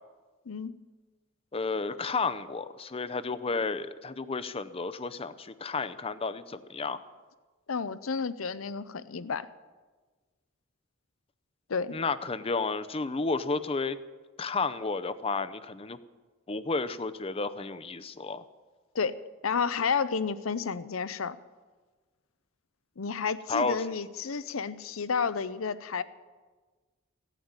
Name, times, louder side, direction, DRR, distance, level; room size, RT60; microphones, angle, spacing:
voice 1, 0.5-0.8 7.7-9.5 11.7-12.0 18.9-19.2 19.4-21.4 23.0-26.0, left 5 dB, 80° left, 14 dB, 0.7 m, -31 dB
voice 2, 1.5-7.0 11.9-14.0 14.4-16.0 16.5-18.4 23.5-23.8, left 4 dB, 30° left, 13 dB, 0.6 m, -32 dB
16.0 x 9.2 x 8.9 m, 1.4 s
head